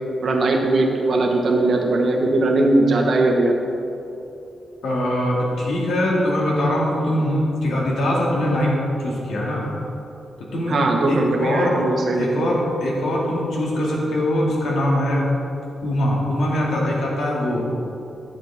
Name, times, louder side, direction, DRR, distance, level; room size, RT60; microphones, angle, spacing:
voice 1, 0.2-3.6 10.7-12.5, right 2 dB, 50° right, 1 dB, 1.1 m, -19 dB
voice 2, 4.8-9.7 10.4-10.8 11.1-11.8 12.2-15.3 15.8-17.7, left 1 dB, 85° left, -4 dB, 2.1 m, -22 dB
10.5 x 7.6 x 3.6 m, 2.9 s
wide cardioid pair, 145°, 0 cm